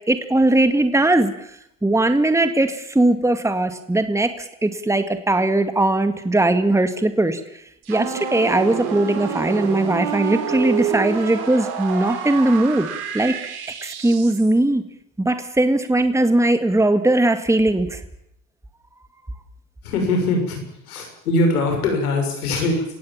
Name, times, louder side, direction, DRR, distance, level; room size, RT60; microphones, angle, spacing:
voice 1, 0.1-1.3 1.8-7.4 7.9-12.9 13.1-13.3 13.8-14.8 15.2-18.0, right 2 dB, 5° right, 9 dB, 2.1 m, -19 dB
sound 1, 7.8-14.5, right 8 dB, 55° right, 5.2 m, -28 dB
voice 2, 19.8-22.8, left 2 dB, 85° left, 4 dB, 6.8 m, -22 dB
29.0 x 16.5 x 7.4 m, 0.78 s
hypercardioid pair, 70°, 43 cm